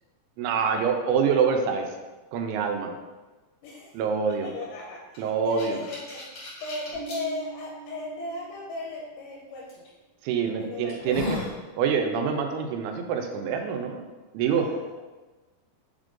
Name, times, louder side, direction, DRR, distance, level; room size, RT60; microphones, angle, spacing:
voice 1, 0.4-1.9 2.3-2.9 3.9-4.5 5.2-5.8 10.2-11.4 11.8-14.0 14.3-14.7, right 6 dB, 85° right, 4 dB, 2.5 m, -25 dB
voice 2, 3.6-4.0 4.4-6.2 6.6-9.6 10.6-11.3 14.5-15.0, left 3 dB, 85° left, -3 dB, 2.4 m, -37 dB
sound 1, 5.1-7.2 7.9-8.0 9.7-9.9 10.4-10.5 10.9-11.5, left 2 dB, 55° left, 1.4 m, -35 dB
Bass guitar, 6.9-9.4, right 9 dB, 60° right, 2.7 m, -43 dB
5.7 x 3.6 x 2.5 m, 1.2 s
omnidirectional pair, 4.3 m